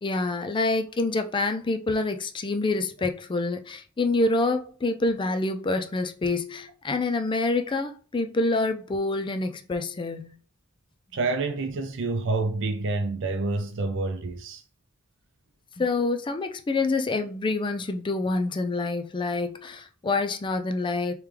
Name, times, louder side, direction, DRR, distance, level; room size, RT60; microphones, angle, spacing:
voice 1, 0.0-10.4 15.8-21.1, left 3 dB, 25° left, 0.4 m, -27 dB
voice 2, 11.1-14.6, right 3 dB, 60° right, 0.5 m, -28 dB
3.4 x 3.1 x 3.3 m
head